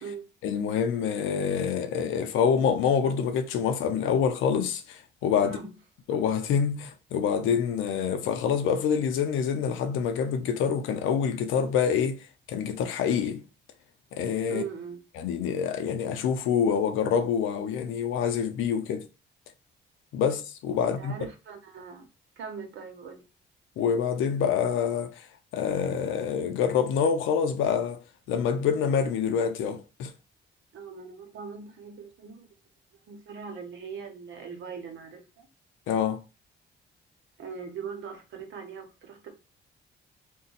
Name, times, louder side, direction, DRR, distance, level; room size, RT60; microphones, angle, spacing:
voice 1, 0.4-5.6 6.1-12.2 12.5-13.4 14.1-14.6 15.2-19.1 20.1-21.1 23.8-25.2 25.5-28.0 28.3-30.1 35.9-36.2, left 7 dB, 90° left, 0.6 m, -26 dB
voice 2, 5.4-5.7 14.5-15.0 20.8-22.1 22.4-23.2 30.7-32.5 33.1-35.5 37.4-39.3, right 6 dB, 75° right, 1.0 m, -40 dB
2.7 x 2.3 x 3.9 m
cardioid pair, 90°, 20 cm